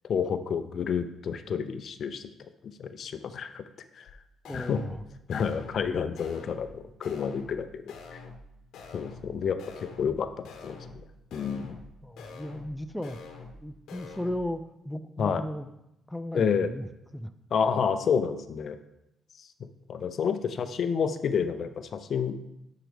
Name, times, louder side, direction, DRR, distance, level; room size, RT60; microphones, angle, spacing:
voice 1, 0.1-2.2 2.8-3.6 4.0-4.1 4.5-4.8 5.3-7.8 8.1-8.2 8.9-11.0 11.3-11.7 15.2-15.4 16.3-16.7 17.5-18.8 19.9-22.4, left 6 dB, 60° left, 10 dB, 0.5 m, -29 dB
sound 1, 4.1-4.2 4.5-5.0 5.3-5.9 6.2-6.7 7.0-7.6 7.9-8.5 8.7-9.3 9.6-10.2 10.5-11.0 11.3-11.9 12.2-12.7 13.0-13.6 13.9-14.4, left 4 dB, 80° left, 1.0 m, -46 dB
voice 2, 4.4-5.0 12.0-13.2 13.6-15.7 16.1-16.9 17.1-17.3, left 1 dB, 5° left, 8 dB, 0.4 m, -36 dB
10.0 x 4.7 x 3.4 m, 0.85 s
cardioid pair, 90°, 0 cm